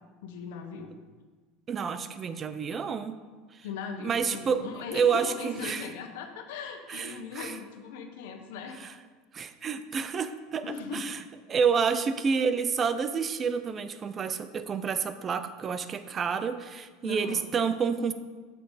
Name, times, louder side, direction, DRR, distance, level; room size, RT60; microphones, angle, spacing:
voice 1, 0.2-0.9 3.6-8.8 10.6-11.1 17.0-17.5, left 5 dB, 80° left, 4 dB, 1.2 m, -39 dB
voice 2, 1.7-3.2 4.0-4.6 4.9-5.8 6.9-7.5 9.3-11.2 11.5-18.1, right 6 dB, 25° right, 11 dB, 0.5 m, -29 dB
8.4 x 6.8 x 4.1 m, 1.4 s
supercardioid pair, 135°, 0 cm